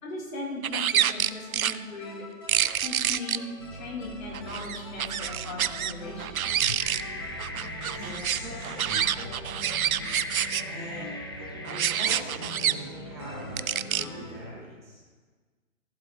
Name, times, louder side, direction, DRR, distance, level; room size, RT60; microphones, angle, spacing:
voice 1, 0.0-2.2 2.7-6.5, left 2 dB, 70° left, -5 dB, 3.1 m, -38 dB
sound 1, 0.6-1.8 2.5-3.4 4.3-5.9 6.2-7.0 7.4-10.6 11.6-12.7 13.6-14.0, right 10 dB, 85° right, 0.5 m, -27 dB
sound 2, 0.7-14.4, left 1 dB, 20° left, 0.6 m, -41 dB
sound 3, 2.6-13.8, right 2 dB, 25° right, 0.5 m, -50 dB
voice 2, 7.5-9.4 10.7-11.1 11.7-14.9, equal, 5° right, -8 dB, 2.6 m, -42 dB
15.0 x 8.1 x 3.6 m, 1.4 s
hypercardioid pair, 155°, 41 cm